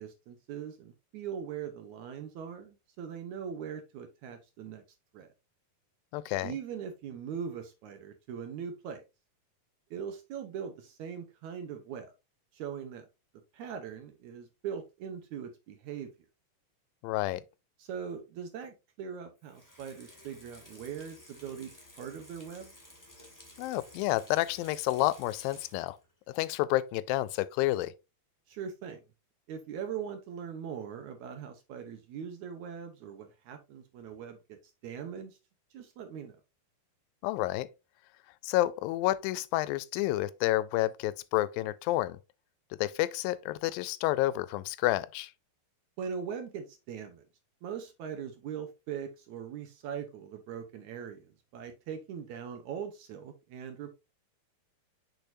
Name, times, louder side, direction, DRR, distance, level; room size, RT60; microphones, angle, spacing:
voice 1, 0.0-4.8 5.1-5.3 6.4-9.0 9.9-12.1 12.5-13.1 13.5-16.1 17.8-22.7 28.5-29.0 29.5-35.4 35.7-36.4 46.0-47.2 47.6-53.9, right 7 dB, 70° right, 2.0 m, -41 dB
voice 2, 6.1-6.6 17.0-17.4 23.6-26.0 26.3-27.9 37.2-37.7 38.4-42.2 42.8-45.3, left 16 dB, 85° left, 2.3 m, -29 dB
Water tap faucet / Sink (filling or washing), 19.4-26.1 26.5-26.6, left 1 dB, 10° left, 0.9 m, -54 dB
6.8 x 6.2 x 2.6 m
omnidirectional pair, 4.1 m